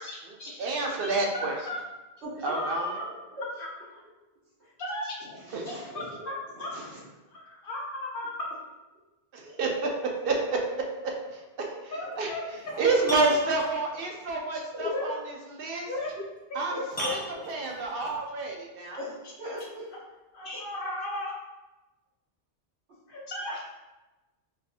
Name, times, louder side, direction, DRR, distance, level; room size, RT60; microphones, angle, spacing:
voice 1, 0.0-0.6 0.8-1.8 2.5-3.0 3.6-3.7 4.8-5.1 5.7-6.7 7.3-8.4 11.9-12.6 14.5-15.1 15.5-15.6 15.9-16.2 16.5-16.6 20.3-21.3 23.1-23.6, left 1 dB, 60° left, -3 dB, 0.9 m, -35 dB
voice 2, 0.6-1.5 2.4-2.9 5.5-5.6 9.3-9.7 10.2-10.4 11.3-11.4 12.2-12.3 12.8-15.2 15.6-15.9 16.5-16.7 17.1-17.2 17.5-19.0, right 3 dB, 65° right, 1 dB, 0.7 m, -28 dB
voice 3, 2.2-2.6 3.0-3.5 5.2-6.1 6.5-7.0 9.4-9.7 11.6-11.8 14.7-14.8 16.7-16.8 19.0-19.9 20.4-20.6, equal, 80° right, -11 dB, 1.2 m, -41 dB
sound 1, 12.0-12.1 12.6-14.1 16.1-16.2 16.9-18.2 19.6-19.7, equal, 10° left, 0.7 m, -35 dB
3.9 x 2.5 x 2.7 m, 1.1 s
omnidirectional pair, 1.1 m